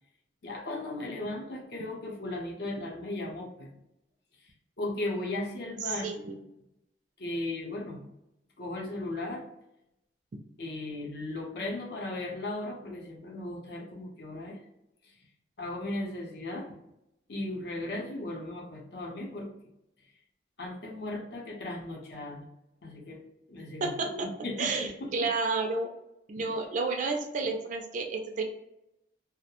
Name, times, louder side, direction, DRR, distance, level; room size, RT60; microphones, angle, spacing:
voice 1, 0.4-3.7 4.8-6.0 7.2-8.1 8.6-9.4 10.6-14.6 15.6-16.7 17.3-19.5 20.6-22.5 22.8-25.3, left 2 dB, 65° left, 0 dB, 0.7 m, -36 dB
voice 2, 5.8-6.4 23.8-24.3 24.6-25.9 26.3-28.4, right 3 dB, 45° right, 3 dB, 0.3 m, -31 dB
2.3 x 2.1 x 2.8 m, 0.85 s
head